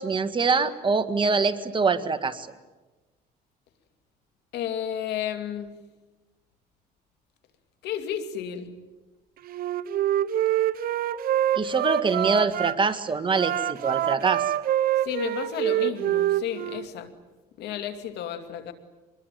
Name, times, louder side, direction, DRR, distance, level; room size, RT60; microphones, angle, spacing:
voice 1, 0.0-2.5 11.5-14.5, right 4 dB, 30° right, 10 dB, 1.6 m, -24 dB
voice 2, 4.5-5.7 7.8-8.8 15.0-17.1 17.6-18.7, left 9 dB, 80° left, 7 dB, 2.5 m, -32 dB
Wind instrument woodwind instrument, 9.5-12.7 13.3-16.9, right 12 dB, 60° right, 0.9 m, -26 dB
25.5 x 21.5 x 9.2 m, 1.2 s
cardioid pair, 110°, 17 cm